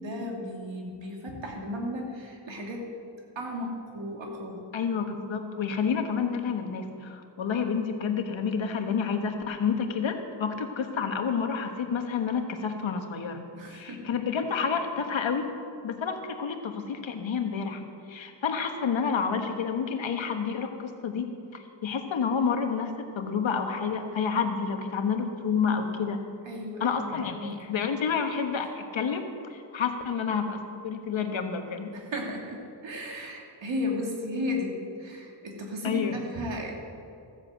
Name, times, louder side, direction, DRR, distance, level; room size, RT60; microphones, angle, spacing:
voice 1, 0.0-2.9 3.3-4.6 13.6-14.1 26.4-27.5 31.9-36.7, left 1 dB, 70° right, -1 dB, 2.8 m, -35 dB
voice 2, 4.7-13.4 13.7-15.5 15.8-17.8 18.1-21.3 21.5-22.9 23.1-26.2 26.8-29.2 29.5-31.9 35.8-36.2, left 6 dB, 75° left, 5 dB, 1.4 m, -29 dB
14.5 x 7.7 x 7.8 m, 2.5 s
cardioid pair, 65°, 46 cm